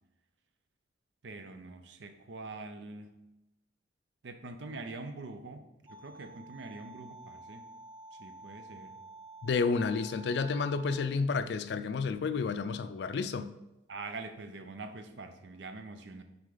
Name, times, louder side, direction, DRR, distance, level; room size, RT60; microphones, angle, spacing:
voice 1, 1.2-3.2 4.2-7.7 8.2-9.0 13.9-16.2, right 3 dB, 75° right, 0.6 m, -44 dB
sound 1, 5.9-11.0, right 3 dB, 25° right, 0.6 m, -50 dB
voice 2, 9.4-13.5, left 4 dB, 65° left, 0.3 m, -30 dB
6.1 x 4.7 x 3.9 m
head